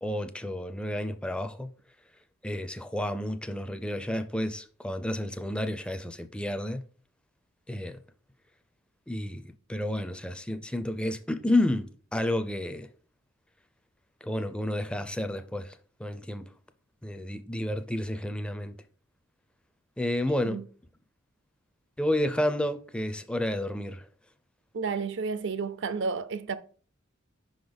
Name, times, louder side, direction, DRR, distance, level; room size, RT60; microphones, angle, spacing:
voice 1, 0.0-1.7 2.4-6.8 7.7-8.0 9.1-9.4 9.7-12.9 14.2-15.7 16.0-16.5 17.0-18.7 20.0-20.6 22.0-24.1, left 1 dB, 5° left, 0.4 m, -30 dB
voice 2, 24.7-26.6, right 5 dB, 60° right, 0.5 m, -31 dB
5.5 x 3.9 x 5.1 m
head